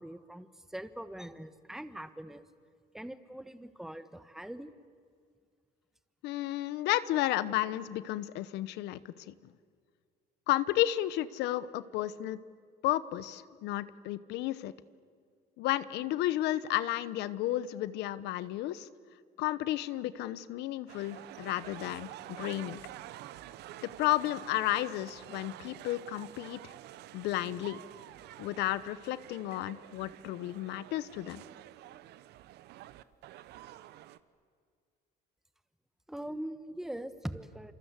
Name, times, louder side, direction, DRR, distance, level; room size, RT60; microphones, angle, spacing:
voice 1, 0.0-2.4 2.9-4.7 36.1-37.7, right 1 dB, ahead, 12 dB, 1.2 m, -42 dB
voice 2, 6.2-9.0 9.3-9.4 10.5-12.4 12.8-14.7 15.6-18.9 19.4-22.1 22.4-22.8 23.8-26.7 27.1-27.8 28.4-31.4, left 14 dB, 85° left, 16 dB, 0.9 m, -32 dB
sound 1, 20.9-34.2, right 14 dB, 80° right, 1.0 m, -49 dB
28.0 x 25.5 x 8.2 m, 2.1 s
cardioid pair, 110°, 17 cm